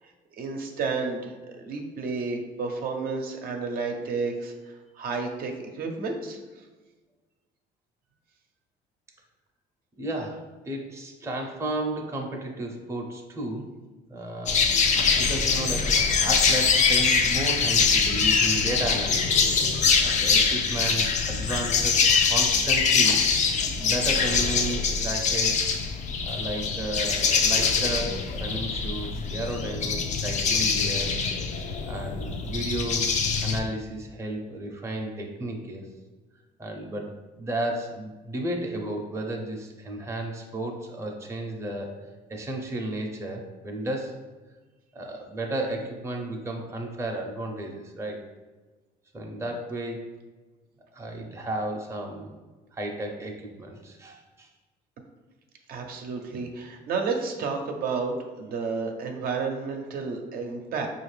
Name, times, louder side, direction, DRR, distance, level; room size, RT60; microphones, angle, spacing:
voice 1, 0.3-6.4 23.0-23.1 55.7-60.9, right 4 dB, 60° right, 2 dB, 0.6 m, -31 dB
voice 2, 10.0-13.7 14.1-14.7 15.2-23.2 23.8-25.8 26.2-31.1 31.9-33.1 33.4-35.9 36.6-42.0 42.3-44.1 44.9-48.2 49.1-50.0 50.9-52.3 52.7-54.5, right 1 dB, 15° right, 0 dB, 0.6 m, -33 dB
sound 1, 14.5-33.6, left 5 dB, 45° left, 0.4 m, -23 dB
5.0 x 2.4 x 3.2 m, 1.2 s
cardioid pair, 110°, 17 cm